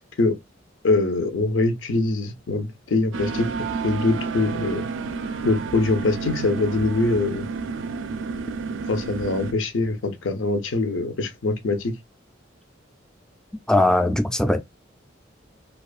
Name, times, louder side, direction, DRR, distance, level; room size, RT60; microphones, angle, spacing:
voice 1, 0.8-3.5 3.8-4.8 5.4-7.5 8.9-11.9, left 3 dB, 80° left, 0.6 m, -23 dB
Spouštění PC, 3.1-9.5, right 4 dB, 80° right, 0.4 m, -30 dB
voice 2, 13.7-14.6, left 1 dB, 5° left, 0.3 m, -19 dB
2.4 x 2.3 x 2.3 m
head